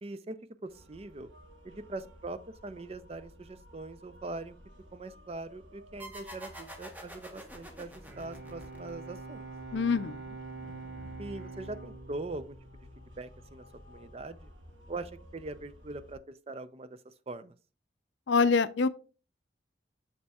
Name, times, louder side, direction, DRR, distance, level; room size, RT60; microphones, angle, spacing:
voice 1, 0.0-1.3 1.6-4.6 4.9-9.5 11.2-12.6 13.2-14.5 14.9-17.5, right 2 dB, 30° right, 0.4 m, -42 dB
sound 1, 0.7-16.2, equal, 90° right, 1.4 m, -53 dB
sound 2, 6.0-9.3, equal, 10° right, 1.0 m, -47 dB
Bowed string instrument, 8.0-13.6, right 3 dB, 65° right, 1.2 m, -46 dB
voice 2, 9.7-10.2 18.3-18.9, left 5 dB, 70° left, 0.5 m, -25 dB
7.4 x 6.8 x 2.3 m
head